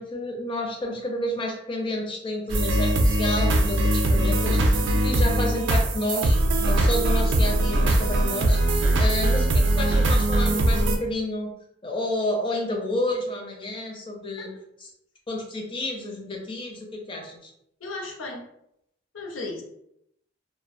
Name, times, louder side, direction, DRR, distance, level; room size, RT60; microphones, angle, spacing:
voice 1, 0.0-11.5 11.8-14.5 14.8-14.9 15.3-17.5, left 1 dB, 25° left, 1 dB, 0.4 m, -30 dB
sound 1, 2.5-11.0, right 1 dB, 65° right, 0.3 m, -21 dB
voice 2, 17.8-18.5 19.1-19.6, left 2 dB, 85° left, 0 dB, 0.6 m, -35 dB
2.4 x 2.1 x 2.5 m, 0.77 s
head